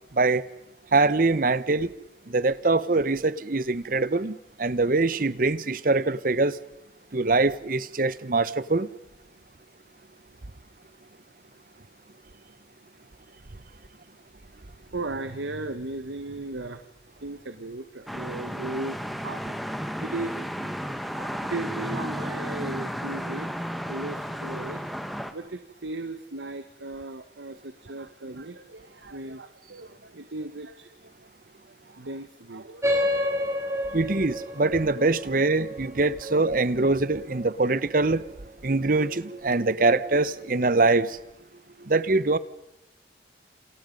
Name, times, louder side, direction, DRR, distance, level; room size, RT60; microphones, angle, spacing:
voice 1, 0.9-1.9 2.3-6.6 7.1-8.9 33.9-38.2 38.6-41.2 41.9-42.4, right 3 dB, 50° right, 0.9 m, -23 dB
voice 2, 14.9-16.8 17.2-19.0 19.2-19.5 20.0-23.5 23.9-24.8 25.3-31.1 31.9-33.3 33.6-33.8, right 2 dB, 85° right, 1.3 m, -37 dB
sound 1, 18.1-25.3, equal, ahead, 1.4 m, -33 dB
sound 2, 32.8-37.8, left 1 dB, 15° right, 3.4 m, -30 dB
28.5 x 28.0 x 5.3 m
head